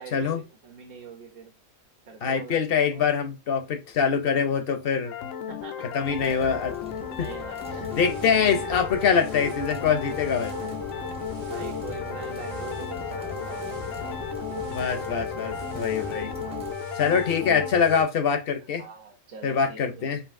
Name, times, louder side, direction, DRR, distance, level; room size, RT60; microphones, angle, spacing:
voice 1, 0.0-1.5 2.1-3.1 5.5-5.9 7.2-7.9 11.5-14.2 18.8-20.1, right 5 dB, 50° right, 1.2 m, -43 dB
voice 2, 2.2-5.1 5.9-6.7 7.2-7.3 7.9-10.8 14.7-16.3 17.0-18.8 19.4-20.2, left 6 dB, 55° left, 0.8 m, -24 dB
sound 1, 5.1-17.7, left 10 dB, 80° left, 1.0 m, -36 dB
sound 2, 6.0-16.8, left 2 dB, 5° right, 0.6 m, -42 dB
sound 3, 7.6-18.0, left 1 dB, 70° right, 1.5 m, -37 dB
5.2 x 2.6 x 2.5 m
omnidirectional pair, 1.4 m